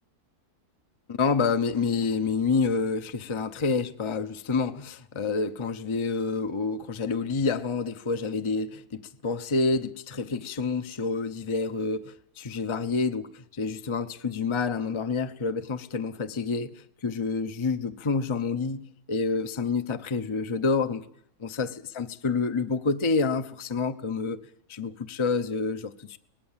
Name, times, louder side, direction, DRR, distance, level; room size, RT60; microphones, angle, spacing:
voice 1, 1.1-21.0 21.4-24.4 24.7-26.2, left 4 dB, 25° left, 9 dB, 0.7 m, -28 dB
24.0 x 19.5 x 7.4 m, 0.72 s
omnidirectional pair, 1.6 m